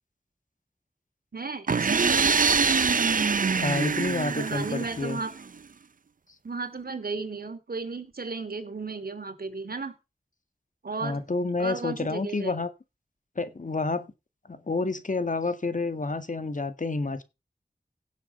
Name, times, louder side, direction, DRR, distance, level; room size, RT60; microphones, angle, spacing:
voice 1, 1.3-2.4 4.3-5.3 6.4-9.9 10.8-11.2 11.6-12.5, right 4 dB, 75° right, 2.7 m, -34 dB
sound 1, 1.7-5.4, right 5 dB, 60° right, 0.6 m, -24 dB
voice 2, 3.5-5.2 11.0-12.7 13.4-14.1 14.5-17.2, left 3 dB, 55° left, 1.9 m, -29 dB
17.0 x 7.4 x 5.5 m
wide cardioid pair, 60°, 16 cm